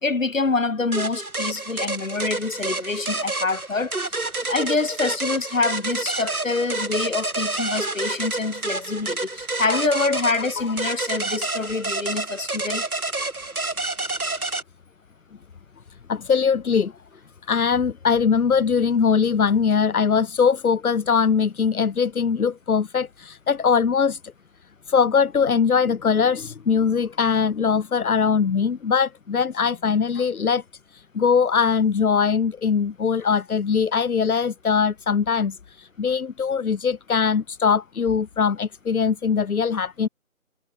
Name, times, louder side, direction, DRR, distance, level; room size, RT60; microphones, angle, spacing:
voice 1, 0.0-12.9, left 3 dB, 65° left, 2.5 m, -26 dB
sound 1, 0.9-14.6, right 2 dB, 90° right, 3.5 m, -29 dB
voice 2, 16.1-16.9 17.5-24.2 24.9-30.6 30.9-40.1, left 6 dB, 85° left, 0.8 m, -21 dB
figure-of-eight pair, 165°, 43 cm